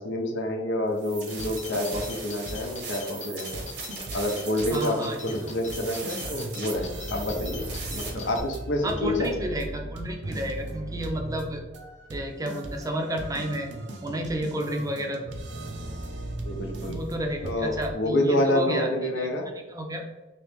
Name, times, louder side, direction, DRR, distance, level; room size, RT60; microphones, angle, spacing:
voice 1, 0.0-3.6 4.1-5.0 5.2-9.3 16.4-16.9 17.4-19.4, left 1 dB, 80° left, 3 dB, 0.7 m, -28 dB
sound 1, 1.0-8.1, right 5 dB, 65° right, 0.9 m, -39 dB
sound 2, 1.3-8.4, left 5 dB, 40° left, 0.5 m, -43 dB
sound 3, 1.4-2.2 2.5-2.9 3.2-3.3 3.5-17.9, right 1 dB, 85° right, 0.6 m, -38 dB
voice 2, 4.7-5.6 6.2-6.3 8.8-11.6 12.1-13.7 14.0-15.2 16.8-19.3 19.7-20.0, right 1 dB, 20° right, 3 dB, 0.5 m, -31 dB
3.0 x 2.9 x 3.4 m, 1.1 s
head